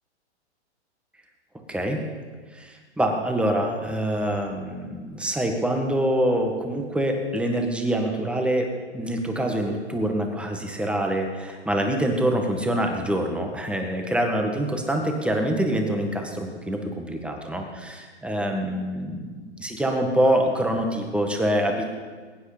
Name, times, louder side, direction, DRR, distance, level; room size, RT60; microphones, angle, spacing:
voice 1, 1.7-2.1 2.5-21.9, right 1 dB, 5° right, 3 dB, 1.7 m, -25 dB
22.0 x 9.9 x 5.1 m, 1.5 s
hypercardioid pair, 135°, 35 cm